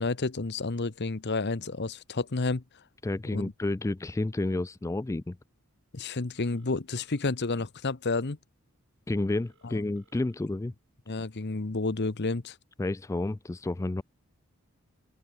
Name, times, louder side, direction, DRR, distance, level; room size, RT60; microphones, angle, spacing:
voice 1, 0.0-2.6 3.3-3.5 5.9-8.4 9.6-9.8 11.1-12.6, left 3 dB, 50° left, 1.0 m, -30 dB
voice 2, 3.0-5.4 9.1-10.7 12.8-14.0, left 2 dB, 15° left, 0.3 m, -30 dB
Telephone, 6.3-7.4 9.3-10.4, right 5 dB, 55° right, 6.5 m, -67 dB
head